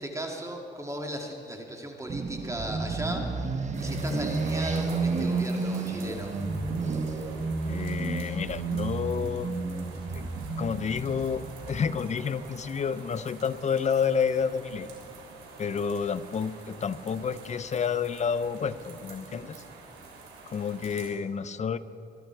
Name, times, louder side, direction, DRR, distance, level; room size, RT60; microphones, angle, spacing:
voice 1, 0.0-3.2 3.8-6.3, right 1 dB, 15° right, 2 dB, 2.3 m, -36 dB
sound 1, 2.1-12.8, right 3 dB, 35° right, 1.4 m, -31 dB
sound 2, 3.7-21.1, right 4 dB, 85° right, 3.2 m, -48 dB
voice 2, 7.6-9.5 10.1-10.2 10.6-14.9 15.6-19.6 20.5-21.8, left 6 dB, 35° left, 14 dB, 0.6 m, -30 dB
22.5 x 12.0 x 4.6 m, 2.6 s
cardioid pair, 90°, 20 cm